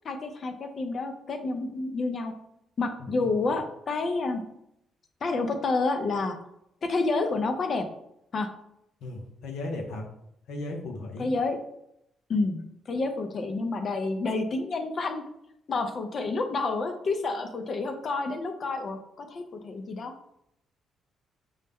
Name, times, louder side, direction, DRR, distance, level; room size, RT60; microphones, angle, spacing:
voice 1, 0.0-2.3 2.8-4.4 5.2-6.4 6.8-7.9 8.3-8.5 11.2-11.6 12.3-15.2 15.7-20.1, left 3 dB, 50° left, 6 dB, 0.6 m, -29 dB
voice 2, 9.0-10.1 10.5-11.3, left 2 dB, 80° left, 2 dB, 0.9 m, -36 dB
5.4 x 2.1 x 3.5 m, 0.77 s
cardioid pair, 90°, 0 cm